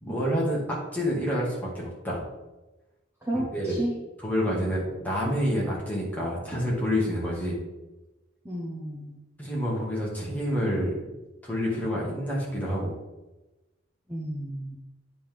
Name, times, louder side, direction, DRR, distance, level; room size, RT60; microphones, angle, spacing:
voice 1, 0.0-2.2 3.3-3.8 4.2-7.6 9.4-10.9 11.4-12.9, equal, 10° left, -5 dB, 2.1 m, -28 dB
voice 2, 3.2-3.9 4.5-4.7 8.4-9.2 14.1-14.8, right 1 dB, 15° right, -6 dB, 1.0 m, -32 dB
8.7 x 5.7 x 3.6 m, 1.1 s
head